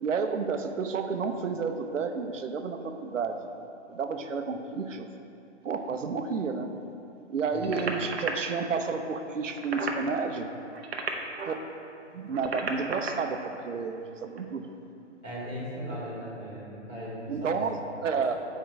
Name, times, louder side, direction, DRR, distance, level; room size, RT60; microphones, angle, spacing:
voice 1, 0.0-3.4 3.9-5.1 5.6-6.7 7.3-10.5 11.5-11.6 12.1-14.6 17.3-18.4, right 5 dB, 85° right, 6 dB, 0.7 m, -31 dB
sound 1, 7.6-8.3 9.4-10.0 10.7-11.6 12.2-13.1 14.3-14.4, right 4 dB, 55° right, 0.8 m, -33 dB
voice 2, 15.2-17.9, equal, 5° left, -14 dB, 0.8 m, -38 dB
7.5 x 4.6 x 4.7 m, 2.9 s
hypercardioid pair, 175°, 37 cm